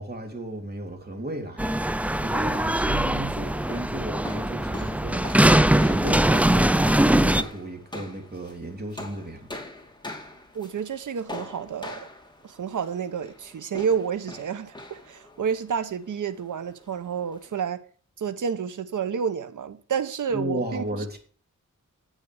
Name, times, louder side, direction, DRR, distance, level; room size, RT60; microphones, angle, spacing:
voice 1, 0.0-9.5 20.3-21.2, right 1 dB, 30° right, 3.3 m, -35 dB
sound 1, 1.6-7.4, right 1 dB, 5° right, 0.4 m, -21 dB
sound 2, 3.2-17.5, left 2 dB, 15° left, 2.7 m, -43 dB
voice 2, 10.5-12.1 12.4-17.8 18.2-20.8, right 7 dB, 75° right, 0.9 m, -30 dB
10.0 x 8.2 x 4.8 m
wide cardioid pair, 80°, 31 cm